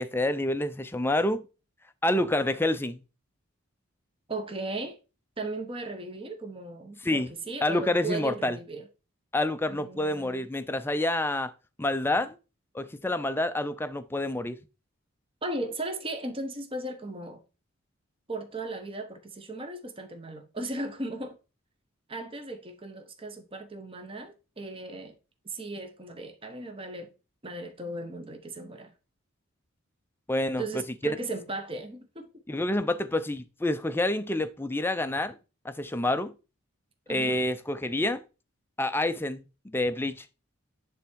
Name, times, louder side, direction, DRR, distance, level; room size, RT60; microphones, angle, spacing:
voice 1, 0.0-1.5 2.0-3.0 7.0-7.3 7.6-8.6 9.3-11.5 11.8-12.4 12.7-14.6 30.3-30.6 31.0-31.2 32.5-35.3 35.6-36.3 37.1-38.2 38.8-40.3, left 1 dB, 10° left, 0.5 m, -28 dB
voice 2, 4.3-5.0 5.4-8.8 9.7-10.5 15.4-17.4 18.3-21.4 22.1-25.1 25.5-27.1 27.4-28.9 30.6-32.4 37.1-37.4, right 2 dB, 25° right, 1.1 m, -36 dB
10.5 x 3.6 x 4.6 m
head